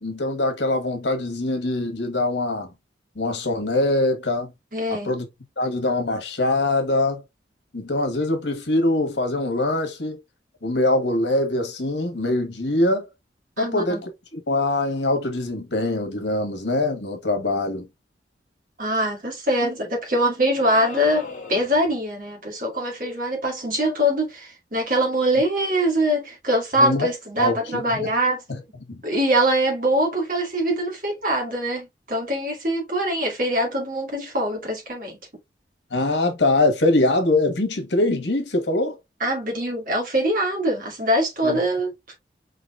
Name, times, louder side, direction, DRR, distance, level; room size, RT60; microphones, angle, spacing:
voice 1, 0.0-2.7 3.1-4.5 4.9-5.2 5.6-7.2 7.7-10.2 10.6-13.1 13.6-17.9 26.8-27.1 27.4-28.1 28.9-29.0 35.9-39.0 41.4-41.6, left 2 dB, 75° left, 1.5 m, -23 dB
voice 2, 4.7-5.1 13.6-14.0 18.8-28.4 29.0-35.2 39.2-41.9, right 1 dB, 45° right, 2.4 m, -23 dB
sound 1, 20.6-21.9, left 3 dB, 45° left, 1.4 m, -37 dB
5.0 x 4.0 x 2.5 m
head